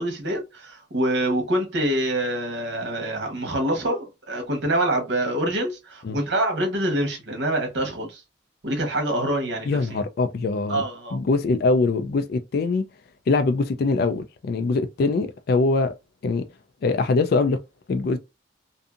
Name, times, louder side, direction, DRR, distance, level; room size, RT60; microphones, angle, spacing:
voice 1, 0.0-8.2 8.6-10.0 10.7-11.2, right 1 dB, 65° right, 1.1 m, -25 dB
voice 2, 9.7-10.8 11.1-12.9 13.3-15.9 16.2-16.4 16.8-17.6 17.9-18.2, left 3 dB, 55° left, 0.3 m, -23 dB
2.6 x 2.6 x 2.4 m
head